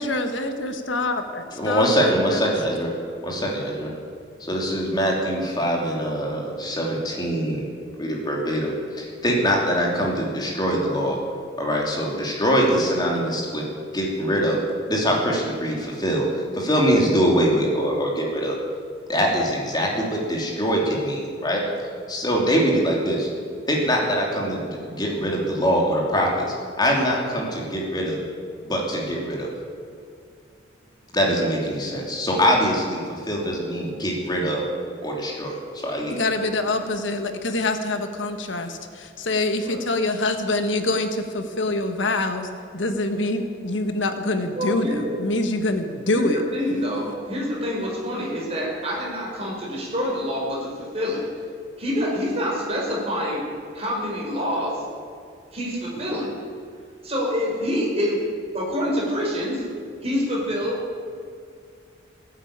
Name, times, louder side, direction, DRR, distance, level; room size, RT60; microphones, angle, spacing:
voice 1, 0.0-2.5 36.1-42.5 42.7-46.4, left 2 dB, 90° left, 7 dB, 1.5 m, -25 dB
voice 2, 1.6-2.9 3.2-3.9 4.4-7.6 8.0-11.2 11.6-13.6 13.9-14.6 14.9-16.3 16.5-18.6 19.1-21.6 22.1-23.3 23.7-26.4 26.8-28.2 28.6-29.5 31.1-34.6 35.0-35.6 35.8-36.2, equal, 20° left, -2 dB, 2.9 m, -23 dB
voice 3, 44.6-45.1 46.1-51.2 51.8-53.4 53.7-54.8 55.5-56.4 57.0-58.2 58.5-59.6 60.0-60.8, equal, 35° right, -3 dB, 4.9 m, -26 dB
17.0 x 9.5 x 8.8 m, 2.3 s
head